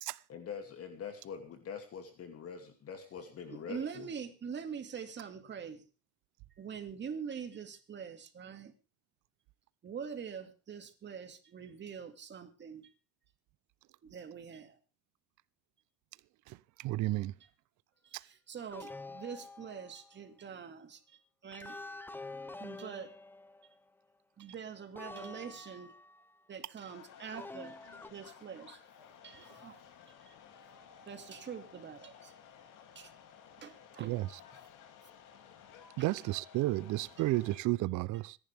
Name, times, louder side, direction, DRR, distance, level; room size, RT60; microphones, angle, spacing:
voice 1, 0.3-4.1, left 6 dB, 40° left, 2.6 m, -44 dB
voice 2, 3.5-5.9 6.6-8.7 9.8-12.9 14.0-14.8 18.0-21.0 21.4-21.8 22.6-23.1 24.4-25.9 26.5-27.8 28.1-28.8 29.2-29.8 30.2-30.3 31.1-32.3 33.0-33.1 33.6-34.1 34.5-34.6 36.0-36.1, right 7 dB, 30° right, 2.2 m, -44 dB
voice 3, 16.8-17.3 34.0-34.3 36.0-38.4, right 18 dB, 55° right, 0.6 m, -32 dB
sound 1, 18.7-20.1 21.5-23.9 25.0-26.4 27.3-28.1, left 2 dB, 5° left, 0.7 m, -47 dB
sound 2, 26.9-37.6, left 7 dB, 60° left, 2.9 m, -56 dB
25.5 x 11.0 x 3.5 m
cardioid pair, 125°, 35 cm